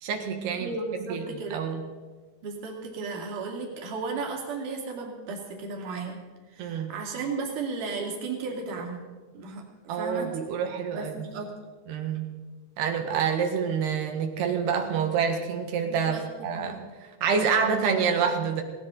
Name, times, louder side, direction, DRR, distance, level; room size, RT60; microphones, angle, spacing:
voice 1, 0.0-0.7 1.1-1.2 1.5-1.8 6.6-6.9 9.9-11.3 11.9-12.3 12.8-16.8 17.2-18.6, right 6 dB, 75° right, 5 dB, 3.2 m, -27 dB
voice 2, 0.6-1.6 2.4-6.2 6.5-9.0 9.3-10.5 10.9-11.5 15.9-16.3 16.5-16.8, right 4 dB, 55° right, 0 dB, 3.6 m, -34 dB
19.0 x 17.5 x 3.9 m, 1.4 s
omnidirectional pair, 4.8 m